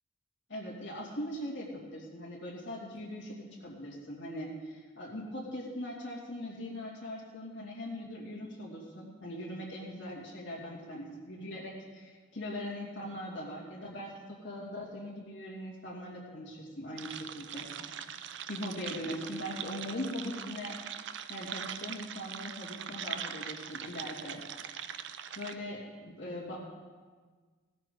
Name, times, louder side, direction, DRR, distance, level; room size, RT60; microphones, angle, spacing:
voice 1, 0.5-17.7 18.5-20.8 21.3-24.4 25.4-26.6, equal, 65° left, -5 dB, 2.5 m, -40 dB
sound 1, 17.0-25.5, right 8 dB, 60° right, 0.5 m, -42 dB
15.5 x 13.5 x 3.8 m, 1.5 s
head